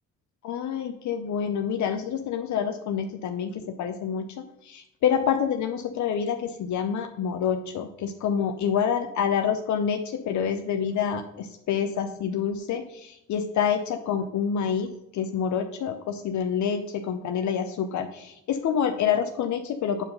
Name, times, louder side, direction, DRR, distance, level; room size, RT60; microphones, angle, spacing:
voice 1, 0.4-4.2 4.6-20.0, left 7 dB, 70° left, 6 dB, 0.7 m, -27 dB
8.3 x 4.6 x 5.4 m, 0.83 s
cardioid pair, 90°, 30 cm